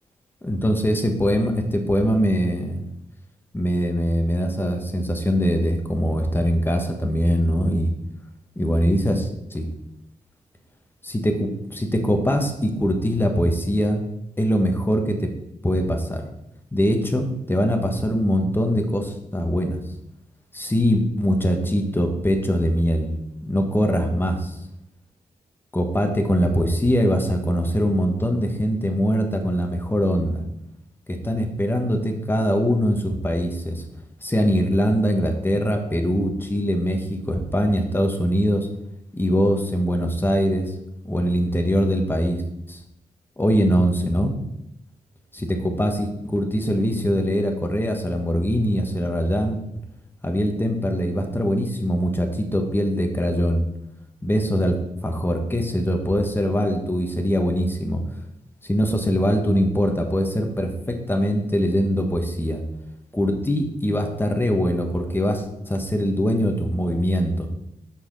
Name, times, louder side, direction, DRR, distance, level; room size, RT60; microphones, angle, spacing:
voice 1, 0.4-2.8 3.5-7.9 8.5-9.7 11.0-14.0 14.4-15.3 15.6-16.2 16.7-19.8 20.5-23.1 23.4-24.6 25.7-30.4 31.1-33.9 34.2-38.7 39.1-40.7 41.0-42.4 42.7-42.8 43.4-44.3 45.3-49.6 50.2-53.7 54.2-54.8 55.0-58.0 58.6-62.6 63.1-67.5, equal, 15° left, 4 dB, 1.3 m, -22 dB
6.2 x 4.3 x 6.3 m, 0.81 s
cardioid pair, 75°, 14 cm